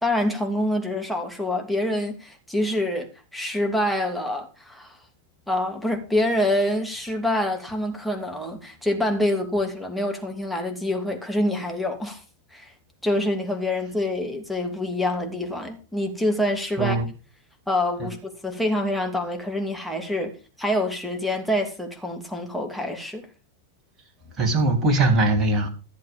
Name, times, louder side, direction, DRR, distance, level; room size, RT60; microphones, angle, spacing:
voice 1, 0.0-5.0 5.5-12.2 12.5-12.7 13.0-17.0 17.7-20.3 20.6-23.3, left 1 dB, ahead, 2.9 m, -26 dB
voice 2, 24.3-25.7, right 2 dB, 20° right, 3.3 m, -21 dB
14.5 x 7.6 x 5.3 m
figure-of-eight pair, 90°, 0 cm